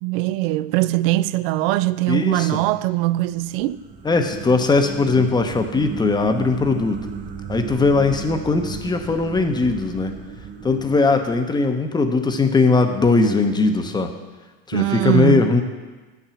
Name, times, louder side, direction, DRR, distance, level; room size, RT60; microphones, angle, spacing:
voice 1, 0.0-3.8 14.7-15.5, right 17 dB, 65° right, 0.4 m, -21 dB
voice 2, 2.1-2.6 4.0-7.0 7.5-10.1 10.6-14.1 14.7-15.6, left 3 dB, 15° left, 0.8 m, -19 dB
sound 1, 2.8-12.0, right 6 dB, 25° right, 0.7 m, -35 dB
8.4 x 5.9 x 6.9 m
supercardioid pair, 115°, 31 cm